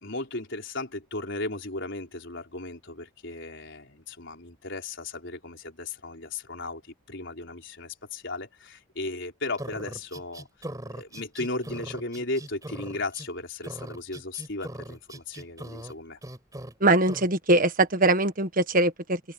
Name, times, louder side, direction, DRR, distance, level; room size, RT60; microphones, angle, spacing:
voice 1, 0.0-6.8 7.1-10.5 10.9-16.2, left 2 dB, 55° left, 5.0 m, -36 dB
sound 1, 9.6-13.3 13.6-15.9 16.2-16.7 17.1-17.3, right 1 dB, 15° right, 4.5 m, -40 dB
voice 2, 16.8-19.2, right 2 dB, 40° right, 1.5 m, -22 dB
head